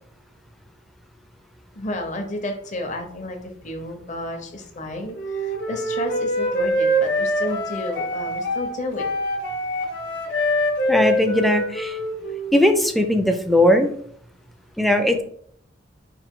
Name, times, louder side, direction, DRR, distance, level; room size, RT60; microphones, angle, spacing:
voice 1, 1.7-9.1, left 1 dB, 40° left, 4 dB, 0.7 m, -31 dB
Wind instrument woodwind instrument, 5.1-12.6, equal, 60° left, 1.0 m, -24 dB
voice 2, 10.9-12.0 12.5-13.9 14.8-15.2, left 1 dB, ahead, 6 dB, 0.4 m, -18 dB
4.9 x 2.5 x 3.6 m, 0.64 s
head